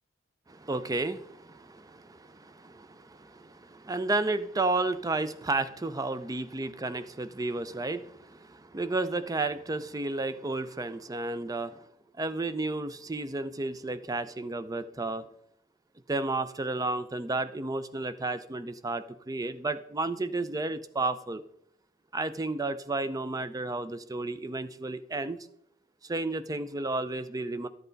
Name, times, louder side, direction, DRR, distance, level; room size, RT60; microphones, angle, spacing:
voice 1, 0.5-11.9 12.2-15.2 16.1-21.4 22.1-25.4 26.0-27.7, right 2 dB, 20° right, 13 dB, 0.5 m, -32 dB
12.0 x 7.8 x 4.0 m, 0.75 s
head